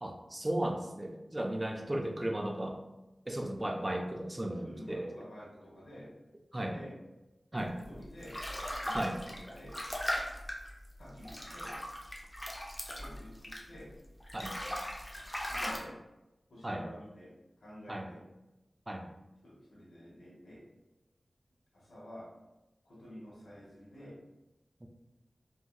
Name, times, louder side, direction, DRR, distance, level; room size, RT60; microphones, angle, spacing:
voice 1, 0.0-2.8 3.3-5.1 6.5-6.8 7.5-7.8 8.9-9.2 14.3-14.5 16.6-16.9 17.9-18.1 18.9-19.1 24.8-24.9, right 1 dB, 25° right, 3 dB, 0.4 m, -35 dB
voice 2, 4.6-6.1 6.7-7.0 7.9-8.4 8.8-9.8 11.0-11.7 12.8-13.9 15.5-16.0 16.5-17.3 17.6-18.2 19.4-20.6 21.7-22.3 22.8-24.2, equal, 90° left, -6 dB, 0.9 m, -50 dB
sound 1, 7.8-13.9 14.2-15.8, equal, 20° left, 0.6 m, -39 dB
2.9 x 2.7 x 2.4 m, 0.98 s
cardioid pair, 50°, 0 cm